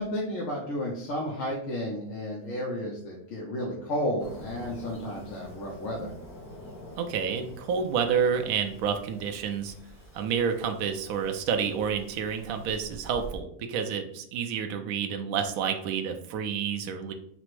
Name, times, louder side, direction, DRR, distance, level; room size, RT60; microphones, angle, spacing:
voice 1, 0.0-6.1, left 1 dB, 65° left, -4 dB, 1.1 m, -32 dB
Fireworks, 4.2-13.4, equal, 85° left, 1.8 m, -47 dB
voice 2, 7.0-9.7 10.1-17.1, right 7 dB, 75° right, 5 dB, 1.0 m, -29 dB
4.2 x 2.0 x 4.5 m, 0.70 s
omnidirectional pair, 1.5 m